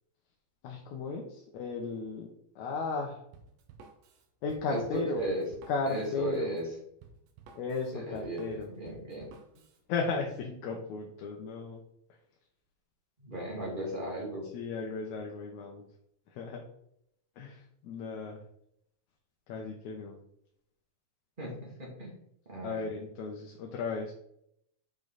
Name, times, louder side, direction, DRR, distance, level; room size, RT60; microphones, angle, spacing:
voice 1, 0.6-3.2 4.4-5.2 5.7-6.6 7.6-8.7 9.9-11.8 14.5-15.8 16.3-16.6 17.4-18.4 19.5-20.2 22.6-24.1, left 4 dB, 70° left, 1 dB, 2.1 m, -35 dB
Drum kit, 3.3-9.8, right 5 dB, 90° right, 2.7 m, -54 dB
voice 2, 4.7-5.4 5.9-6.6 7.9-9.3 13.2-14.5 21.4-22.2 22.5-22.9, right 1 dB, 15° right, -3 dB, 2.0 m, -36 dB
7.5 x 5.6 x 3.9 m, 0.73 s
omnidirectional pair, 3.8 m